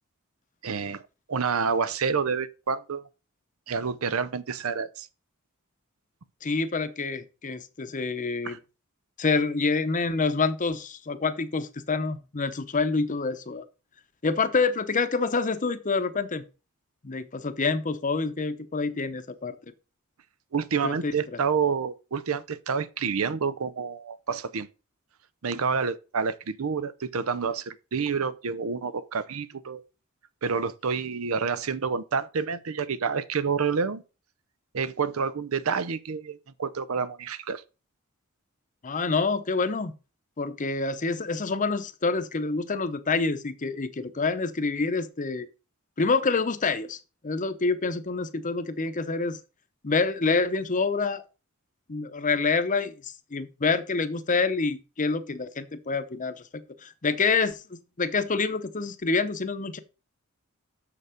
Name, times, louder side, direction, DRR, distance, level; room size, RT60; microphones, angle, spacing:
voice 1, 0.6-1.0 1.3-3.0 3.7-5.1 8.4-8.6 20.5-24.7 25.4-29.8 30.4-34.0 34.7-37.6, right 5 dB, 75° right, 0.6 m, -28 dB
voice 2, 6.4-8.6 9.2-13.6 14.2-16.4 17.0-19.6 20.8-21.1 38.8-39.9 40.4-45.5 46.0-47.0 47.2-49.4 49.8-51.2 51.9-56.3 56.8-59.8, left 4 dB, 40° left, 0.8 m, -27 dB
6.8 x 6.7 x 5.0 m
head